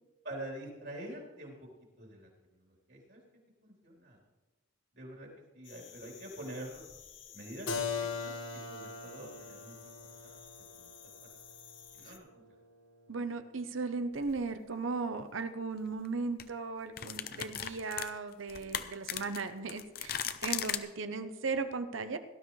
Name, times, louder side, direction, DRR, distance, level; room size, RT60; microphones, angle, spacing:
voice 1, 0.2-1.7 2.0-2.3 2.6-3.2 3.6-4.2 5.0-5.3 5.5-6.8 7.3-7.7 8.0-8.3 8.7-9.7 10.2-10.3 10.7-10.9 11.9-12.4, right 1 dB, 55° right, -2 dB, 3.6 m, -45 dB
sound 1, 5.6-12.2, left 9 dB, 65° left, 1.2 m, -54 dB
Keyboard (musical), 7.7-13.3, left 5 dB, 85° left, 1.5 m, -41 dB
voice 2, 13.1-22.2, right 4 dB, 75° right, 9 dB, 0.8 m, -37 dB
sound 2, 14.2-14.4 15.9-16.1 16.4-16.5 17.0-20.8, left 10 dB, 50° left, 0.6 m, -37 dB
18.0 x 12.0 x 3.2 m, 1.2 s
head